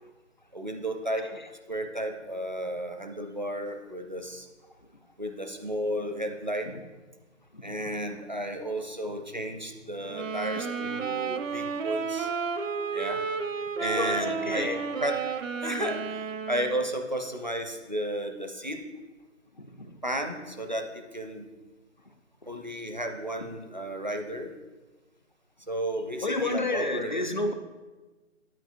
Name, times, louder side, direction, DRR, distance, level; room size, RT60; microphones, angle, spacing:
voice 1, 0.5-1.3 1.7-4.5 5.2-6.7 7.6-12.3 12.9-13.2 13.8-18.8 20.0-21.5 22.5-24.5 25.7-27.3, right 1 dB, 35° right, 4 dB, 0.4 m, -33 dB
sound 1, 10.1-16.9, right 5 dB, 75° right, 0.7 m, -32 dB
voice 2, 13.8-14.8 19.6-19.8 26.2-27.5, left 2 dB, 40° left, 7 dB, 0.4 m, -30 dB
9.1 x 9.1 x 2.4 m, 1.3 s
figure-of-eight pair, 170°, 39 cm